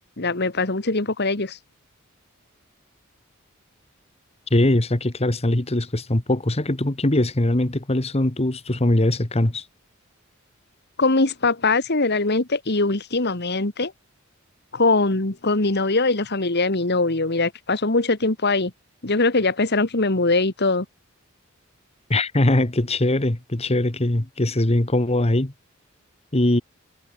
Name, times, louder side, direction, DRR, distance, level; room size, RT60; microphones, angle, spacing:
voice 1, 0.2-1.6 11.0-13.9 14.7-18.7 19.0-20.9, left 3 dB, 50° left, 2.1 m, -22 dB
voice 2, 4.5-9.6 22.1-25.5 26.3-26.6, left 1 dB, 30° left, 1.5 m, -21 dB
head